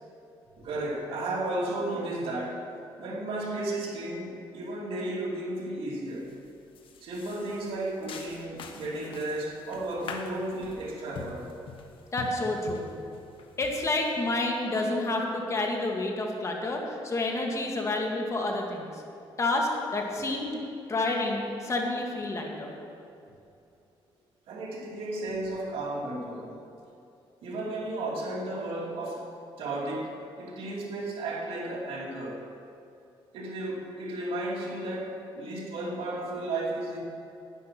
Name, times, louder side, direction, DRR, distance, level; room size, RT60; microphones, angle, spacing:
voice 1, 0.6-2.6 3.0-6.3 7.0-11.5 24.5-26.6 27.4-29.3 29.6-32.4 33.3-37.0, right 1 dB, 75° right, -2 dB, 2.6 m, -34 dB
sound 1, 6.1-6.4 6.7-14.4, left 5 dB, 65° left, 1.3 m, -44 dB
voice 2, 12.1-12.9 13.6-19.0 19.4-20.6 20.9-22.7, left 2 dB, 30° left, 0 dB, 2.0 m, -29 dB
11.0 x 10.0 x 6.1 m, 2.7 s
cardioid pair, 105°, 9 cm